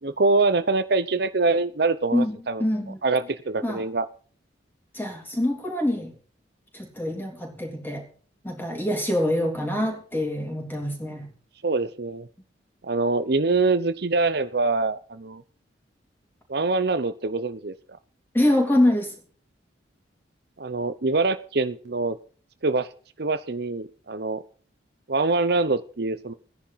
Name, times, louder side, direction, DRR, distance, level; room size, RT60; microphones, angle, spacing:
voice 1, 0.0-2.6 3.0-4.1 11.6-12.3 12.8-15.4 16.5-17.7 20.6-22.2 22.6-22.9 23.2-24.4 25.1-26.3, right 3 dB, 60° right, 12 dB, 0.8 m, -24 dB
voice 2, 2.1-3.0 3.6-3.8 4.9-6.1 6.7-8.0 8.4-11.3 18.3-19.1, left 1 dB, 10° left, 2 dB, 3.4 m, -25 dB
14.5 x 10.5 x 5.7 m, 0.42 s
head